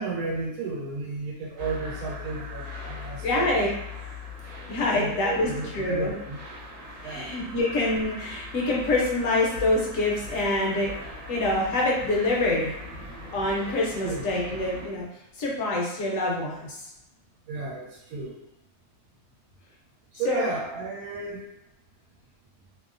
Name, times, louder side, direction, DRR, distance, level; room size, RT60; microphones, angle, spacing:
voice 1, 0.0-3.6 4.9-6.4 7.0-7.3 14.0-14.2 17.5-18.4 20.1-21.4, right 3 dB, 90° right, -2 dB, 1.1 m, -33 dB
sound 1, 1.6-14.9, left 2 dB, 60° right, 1.1 m, -40 dB
voice 2, 3.2-3.7 4.7-6.1 7.0-10.9 11.3-12.7 13.3-15.1 15.4-16.8 20.2-20.4, left 2 dB, 70° left, -3 dB, 0.9 m, -26 dB
2.7 x 2.0 x 2.4 m, 0.88 s
omnidirectional pair, 1.6 m